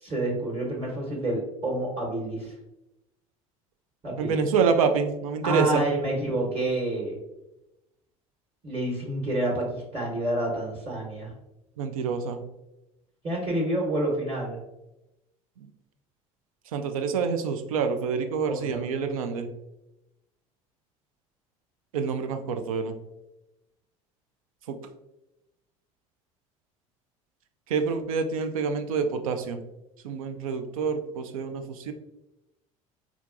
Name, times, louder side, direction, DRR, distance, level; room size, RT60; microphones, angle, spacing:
voice 1, 0.0-2.5 4.0-4.4 5.4-7.1 8.6-11.3 13.2-14.6 18.5-18.8, right 1 dB, 35° right, -1 dB, 1.1 m, -28 dB
voice 2, 4.2-5.9 11.8-12.4 16.7-19.5 21.9-22.9 24.7-24.8 27.7-29.6 30.0-31.9, right 5 dB, 80° right, 8 dB, 0.4 m, -27 dB
4.4 x 2.4 x 2.5 m, 0.94 s
hypercardioid pair, 65°, 18 cm